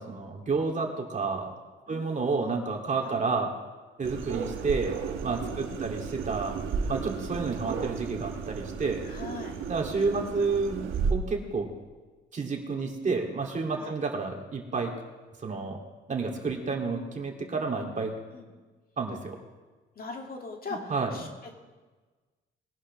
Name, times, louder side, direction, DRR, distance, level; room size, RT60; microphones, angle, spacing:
voice 1, 0.0-1.5 1.9-3.5 4.0-6.6 6.9-9.0 9.7-11.7 12.3-14.9 15.4-15.8 16.1-18.1 19.0-19.4 20.9-21.1, right 4 dB, 40° right, 1 dB, 2.4 m, -30 dB
voice 2, 1.9-2.5 3.0-3.2 5.3-6.0 9.0-9.6 13.7-13.9 18.3-18.5 20.0-21.6, left 4 dB, 50° left, 2 dB, 2.2 m, -42 dB
sound 1, 4.0-11.1, right 6 dB, 80° right, 1.2 m, -34 dB
21.0 x 11.0 x 3.2 m, 1.3 s
cardioid pair, 90°, 20 cm